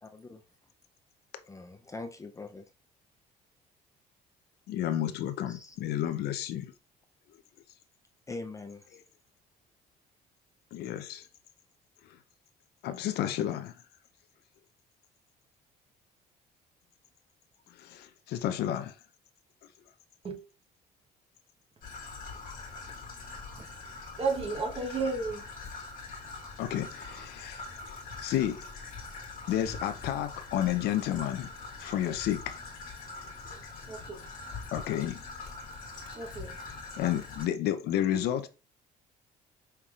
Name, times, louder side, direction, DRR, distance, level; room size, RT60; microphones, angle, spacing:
voice 1, 0.0-0.4 1.4-2.7 5.5-5.8 8.3-9.0, left 3 dB, 20° left, 0.5 m, -43 dB
voice 2, 4.7-6.7 10.7-11.2 12.8-13.7 17.8-18.9 26.6-27.6 28.2-28.7 29.5-31.5 31.8-32.6 34.7-35.2 37.0-38.5, left 11 dB, 75° left, 0.5 m, -31 dB
Traffic noise roadway noise / Trickle dribble, 21.8-37.5, left 3 dB, 55° left, 1.4 m, -43 dB
voice 3, 24.2-25.4 33.9-34.2 36.1-36.5, right 4 dB, 35° right, 1.0 m, -32 dB
5.6 x 3.3 x 2.4 m
cardioid pair, 110°, 17 cm